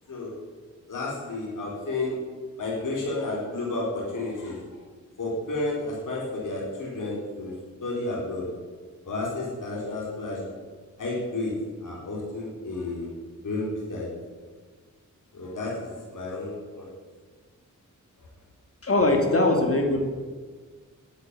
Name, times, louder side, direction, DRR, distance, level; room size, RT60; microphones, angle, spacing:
voice 1, 0.9-2.1 2.6-4.6 5.2-7.5 7.8-8.5 9.0-10.5 11.0-11.5 11.8-13.1 13.4-14.1 15.3-16.9, left 2 dB, 75° left, -4 dB, 4.2 m, -31 dB
voice 2, 18.8-20.1, left 2 dB, 45° left, 3 dB, 3.0 m, -21 dB
12.0 x 9.4 x 8.2 m, 1.5 s
cardioid pair, 70°, 32 cm